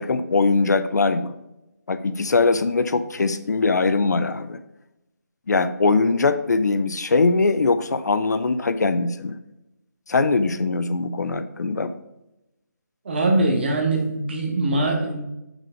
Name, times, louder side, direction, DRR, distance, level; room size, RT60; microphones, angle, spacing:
voice 1, 0.0-1.3 1.9-4.6 5.5-9.4 10.1-11.9, left 3 dB, 65° left, 11 dB, 0.6 m, -21 dB
voice 2, 13.0-15.2, right 2 dB, 35° right, 2 dB, 1.4 m, -22 dB
6.8 x 6.0 x 3.9 m, 0.93 s
hypercardioid pair, 175°, 10 cm